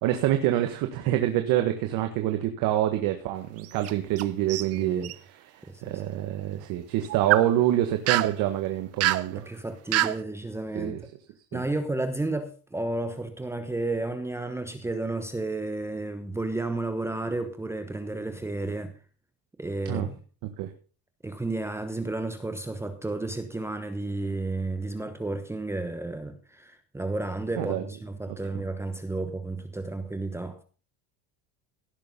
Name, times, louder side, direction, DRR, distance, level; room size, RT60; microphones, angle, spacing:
voice 1, 0.0-5.5 5.8-9.4 10.7-11.0 11.5-11.6 19.8-20.1 20.6-20.7 27.6-27.8, right 13 dB, 55° right, 6 dB, 1.7 m, -26 dB
sound 1, 3.6-4.2 4.5-5.2 7.0-7.5 8.1-8.3 9.0-9.3 9.9-10.2, right 15 dB, 40° right, 0.7 m, -25 dB
voice 2, 4.7-5.1 5.6-6.0 9.3-10.9 11.5-18.9 19.6-20.2 21.2-30.6, right 2 dB, 5° right, 8 dB, 1.1 m, -32 dB
16.5 x 7.0 x 5.5 m, 0.37 s
supercardioid pair, 145°, 40 cm